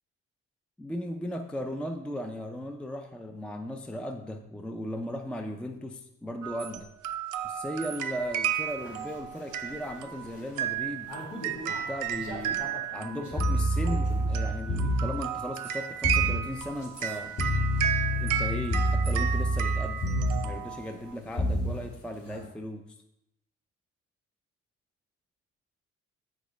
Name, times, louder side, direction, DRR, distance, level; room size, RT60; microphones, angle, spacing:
voice 1, 0.8-6.9 7.4-11.1 11.7-12.7 12.9-17.4 18.2-20.0 20.4-23.0, equal, 5° left, 5 dB, 0.4 m, -37 dB
sound 1, 6.4-21.1, right 10 dB, 85° right, 0.6 m, -33 dB
sound 2, 7.9-22.5, equal, 90° left, 2.4 m, -47 dB
sound 3, 13.3-15.2 16.0-16.4 17.4-20.6 21.4-21.8, equal, 55° left, 1.6 m, -27 dB
7.7 x 6.1 x 3.2 m, 0.86 s
cardioid pair, 90°, 30 cm